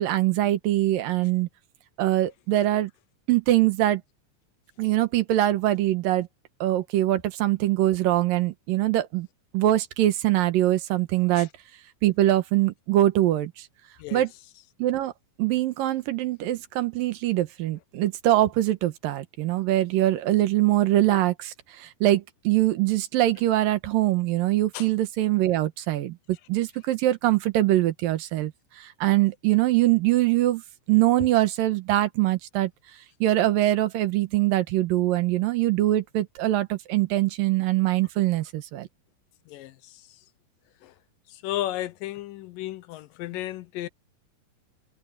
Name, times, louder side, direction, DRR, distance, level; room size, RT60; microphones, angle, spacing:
voice 1, 0.0-1.5 2.0-2.9 3.3-4.0 4.8-6.3 6.6-9.3 9.5-11.5 12.0-13.7 14.1-14.3 14.8-15.1 15.4-26.2 26.5-30.6 30.9-32.7 33.2-38.9, right 15 dB, 85° right, 2.9 m, -23 dB
voice 2, 41.4-43.9, left 14 dB, 80° left, 2.5 m, -33 dB
omnidirectional pair, 3.9 m